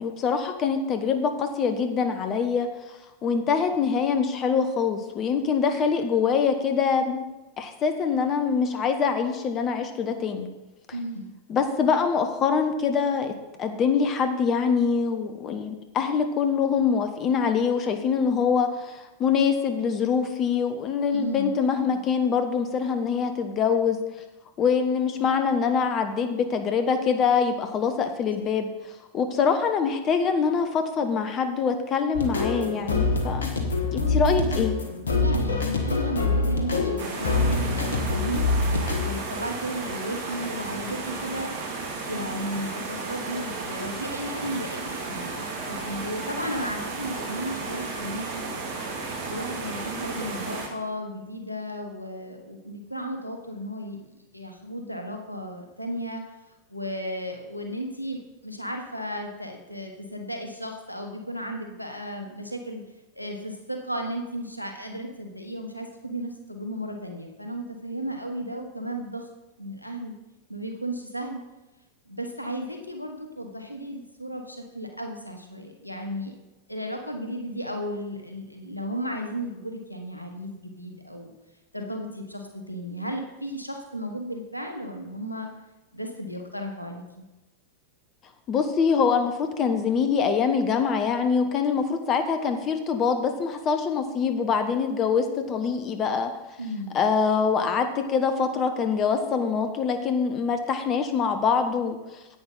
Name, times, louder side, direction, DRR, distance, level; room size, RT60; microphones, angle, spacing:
voice 1, 0.0-3.0 3.2-7.2 7.6-10.5 11.5-13.3 13.6-24.0 24.6-33.5 33.9-34.7 88.5-96.3 96.9-102.2, left 6 dB, 30° left, 7 dB, 1.0 m, -24 dB
voice 2, 10.9-11.3 21.1-21.5 28.4-28.5 34.0-34.7 35.1-41.5 42.0-48.5 49.2-56.2 56.7-62.8 63.1-69.3 69.6-70.1 70.5-71.4 72.1-76.3 76.7-81.3 81.7-85.5 85.9-87.2 96.6-97.0, equal, 90° left, 4 dB, 1.3 m, -34 dB
sound 1, 32.1-39.1, left 3 dB, 70° left, 1.4 m, -25 dB
sound 2, 37.0-50.7, right 3 dB, 50° right, 2.1 m, -34 dB
10.5 x 8.8 x 3.9 m, 1.0 s
figure-of-eight pair, 90°, 0 cm